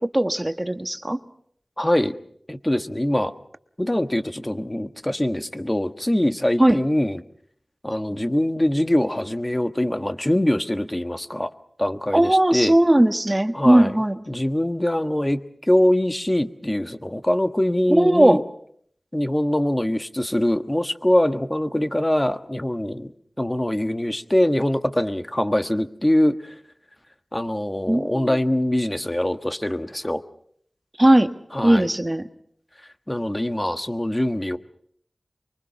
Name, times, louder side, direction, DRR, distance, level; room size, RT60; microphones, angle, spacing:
voice 1, 0.1-1.2 6.6-6.8 12.1-14.2 17.9-18.4 27.9-28.4 31.0-31.3 31.6-32.3, right 1 dB, 25° right, 8 dB, 1.4 m, -18 dB
voice 2, 1.8-2.1 2.5-3.3 3.8-7.2 7.8-11.5 11.8-12.8 13.5-14.0 14.3-18.4 19.1-23.1 23.4-26.5 27.3-30.2 31.5-31.9 33.1-34.6, left 1 dB, 20° left, 9 dB, 1.4 m, -23 dB
24.5 x 23.5 x 5.8 m, 0.65 s
wide cardioid pair, 55°, 0 cm